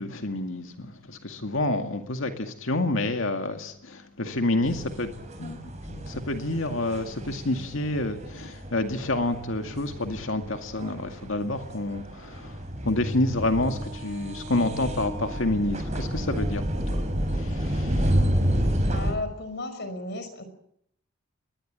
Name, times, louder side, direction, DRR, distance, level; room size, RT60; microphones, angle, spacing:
voice 1, 0.0-5.1 5.4-17.0 17.3-18.1, left 2 dB, 70° left, 2.1 m, -29 dB
sound 1, 4.6-19.1, equal, 35° right, 5.6 m, -30 dB
voice 2, 18.9-20.4, left 2 dB, 55° left, 5.5 m, -34 dB
21.5 x 21.0 x 8.9 m
head